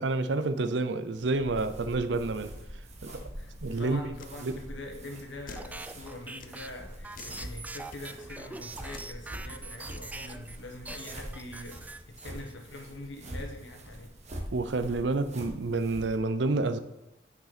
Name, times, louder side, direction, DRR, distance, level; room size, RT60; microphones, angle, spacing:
voice 1, 0.0-2.5 3.0-3.1 3.6-4.1 4.4-4.6 14.5-16.8, right 3 dB, 70° right, 0.6 m, -29 dB
sound 1, 1.1-16.2, equal, 40° right, 1.2 m, -44 dB
voice 2, 3.0-14.1, left 1 dB, 90° left, 1.3 m, -44 dB
sound 2, 4.2-4.4 5.5-5.8 6.4-6.6 7.1-7.4 7.9-8.0 8.9-9.2, left 4 dB, 50° left, 0.6 m, -46 dB
sound 3, 5.6-10.6 10.8-12.5, right 2 dB, 10° right, 0.3 m, -43 dB
9.2 x 5.4 x 4.1 m
head